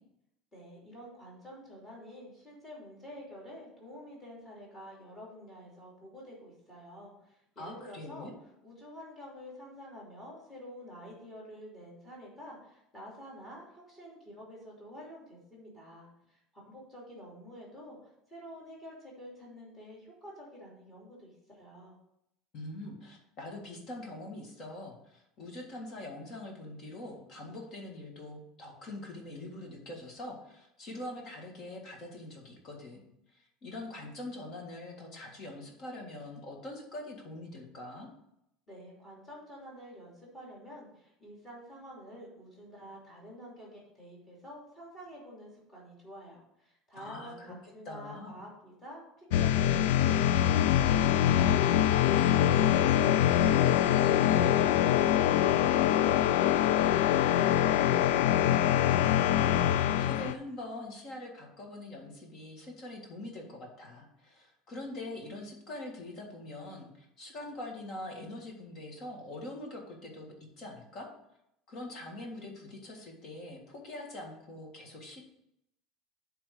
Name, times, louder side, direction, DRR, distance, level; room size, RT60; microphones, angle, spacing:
voice 1, 0.5-8.3 8.6-22.0 38.7-59.0, equal, 15° left, -4 dB, 2.9 m, -49 dB
voice 2, 7.6-8.3 22.5-33.0 33.3-38.1 46.9-47.6 47.9-48.4 60.0-71.1 71.7-75.2, left 1 dB, 35° left, 1 dB, 1.8 m, -43 dB
sound 1, 49.3-60.3, left 11 dB, 80° left, 0.4 m, -24 dB
8.6 x 3.6 x 6.5 m, 0.80 s
cardioid pair, 170°, 0 cm